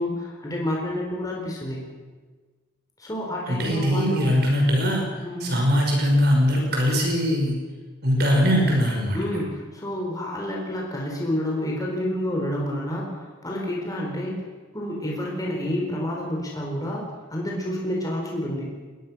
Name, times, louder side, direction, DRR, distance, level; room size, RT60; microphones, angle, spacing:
voice 1, 0.0-1.8 3.0-4.3 5.2-5.5 9.1-14.4 14.7-18.7, left 1 dB, 20° left, -2 dB, 4.4 m, -29 dB
voice 2, 3.5-5.0 5.4-7.6 8.0-9.4, equal, 55° right, 0 dB, 5.9 m, -21 dB
22.0 x 20.5 x 6.4 m, 1.4 s
head